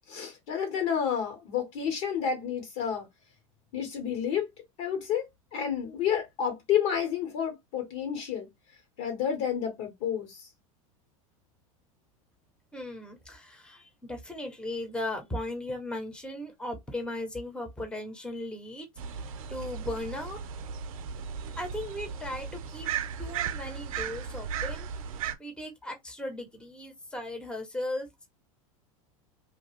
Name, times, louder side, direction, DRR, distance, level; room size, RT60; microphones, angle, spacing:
voice 1, 0.1-3.1 3.7-4.5 4.8-5.2 5.5-8.5 9.0-10.4, left 8 dB, 60° left, 1.6 m, -30 dB
voice 2, 12.7-18.9 19.1-20.4 21.6-22.9 23.2-25.0 25.4-28.1, left 1 dB, 5° left, 1.0 m, -37 dB
sound 1, 19.0-25.3, right 7 dB, 75° right, 0.5 m, -36 dB
2.7 x 2.3 x 3.3 m
hypercardioid pair, 95°, 18 cm